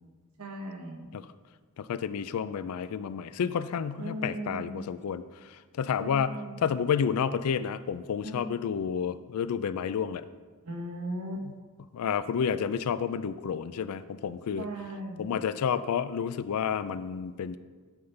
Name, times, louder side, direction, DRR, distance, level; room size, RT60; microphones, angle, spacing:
voice 1, 0.4-1.1 4.0-4.7 6.0-6.7 8.2-8.5 10.6-11.5 14.6-15.3, right 1 dB, 90° right, 3 dB, 1.2 m, -37 dB
voice 2, 1.8-6.3 6.6-10.2 11.4-11.5 11.9-14.7 15.2-17.6, left 7 dB, 90° left, 14 dB, 0.4 m, -30 dB
11.5 x 5.5 x 3.3 m, 1.4 s
head